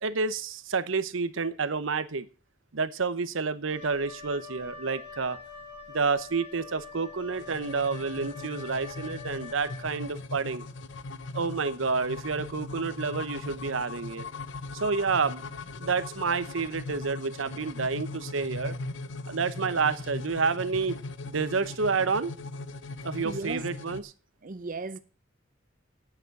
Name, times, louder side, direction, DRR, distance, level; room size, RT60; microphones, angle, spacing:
voice 1, 0.0-2.3 2.7-5.4 5.9-10.6 11.3-14.2 14.7-15.4 15.8-18.8 19.3-21.0 21.3-22.3 23.0-24.1, right 4 dB, 85° right, 0.9 m, -29 dB
Wind instrument woodwind instrument, 3.7-10.2, left 4 dB, 35° left, 5.3 m, -45 dB
sound 1, 7.3-24.0, left 2 dB, 65° left, 0.7 m, -39 dB
voice 2, 23.2-23.7 24.4-25.0, right 3 dB, 45° right, 0.7 m, -35 dB
9.1 x 7.4 x 8.1 m
head